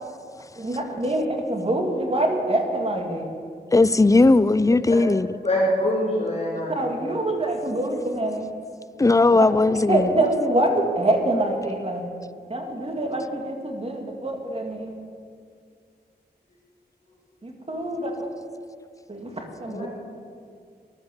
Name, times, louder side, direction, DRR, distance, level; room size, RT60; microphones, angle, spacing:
voice 1, 0.6-3.3 6.7-8.5 9.3-9.4 9.9-12.0 12.5-15.0 17.4-18.3 19.1-19.9, right 1 dB, 35° right, 2.0 m, -25 dB
voice 2, 3.7-5.4 9.0-10.1, left 3 dB, 20° left, 0.4 m, -17 dB
voice 3, 5.4-6.7 19.7-19.9, left 1 dB, 35° left, 4.1 m, -24 dB
15.0 x 11.0 x 7.0 m
wide cardioid pair, 95°, 17 cm